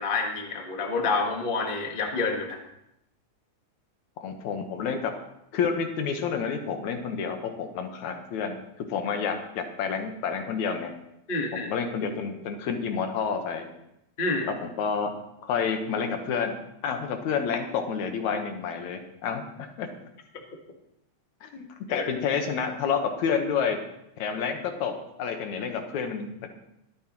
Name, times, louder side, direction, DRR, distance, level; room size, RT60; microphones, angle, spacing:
voice 1, 0.0-2.6 11.3-11.7 14.2-14.5 21.9-22.1, left 3 dB, 35° left, 2 dB, 0.9 m, -28 dB
voice 2, 4.2-5.1 5.5-8.6 8.9-10.9 11.5-13.7 14.5-15.1 15.4-16.5 16.8-19.9 21.4-23.8 24.2-26.5, left 6 dB, 80° left, 5 dB, 2.5 m, -29 dB
22.0 x 9.0 x 3.0 m, 0.82 s
omnidirectional pair, 3.4 m